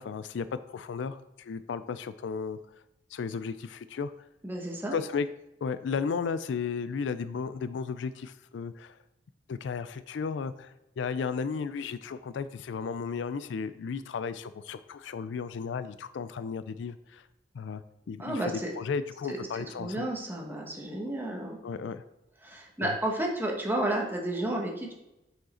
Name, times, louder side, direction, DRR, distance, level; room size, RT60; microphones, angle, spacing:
voice 1, 0.0-2.6 3.1-4.1 4.9-5.3 5.6-9.0 9.5-17.2 17.5-17.8 18.1-20.1 21.6-22.0 22.8-23.0, left 5 dB, 75° left, 13 dB, 0.4 m, -34 dB
voice 2, 4.4-5.0 18.2-18.7 19.3-21.6 22.4-24.9, right 1 dB, 10° right, -1 dB, 1.2 m, -32 dB
6.3 x 5.1 x 4.3 m, 0.92 s
head